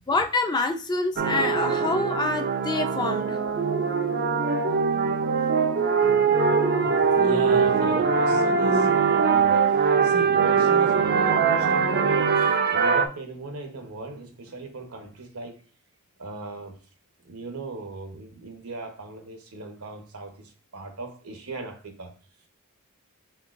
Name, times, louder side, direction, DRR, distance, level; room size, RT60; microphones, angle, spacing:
voice 1, 0.1-3.4 6.2-6.3 6.8-7.2, left 3 dB, 20° left, 0.4 m, -27 dB
sound 1, 1.2-13.1, right 5 dB, 45° right, 0.4 m, -22 dB
voice 2, 7.1-9.6 10.0-15.6 16.2-16.8 17.2-22.1, right 3 dB, 80° right, 0.9 m, -37 dB
4.4 x 3.8 x 2.5 m
head